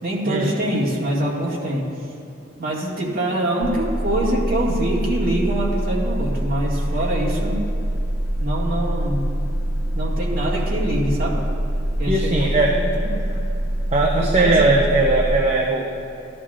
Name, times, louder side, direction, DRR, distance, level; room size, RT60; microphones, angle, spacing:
voice 1, 0.0-1.9 2.6-7.6 8.4-9.2 9.9-11.4 12.0-13.2 14.1-14.8, right 1 dB, 55° right, -4 dB, 2.1 m, -24 dB
sound 1, 3.6-15.3, right 1 dB, 55° left, 2.1 m, -24 dB
voice 2, 12.1-12.8 13.3-13.5 13.9-15.9, right 2 dB, 35° right, -2 dB, 0.7 m, -19 dB
14.5 x 11.0 x 2.5 m, 2.8 s
head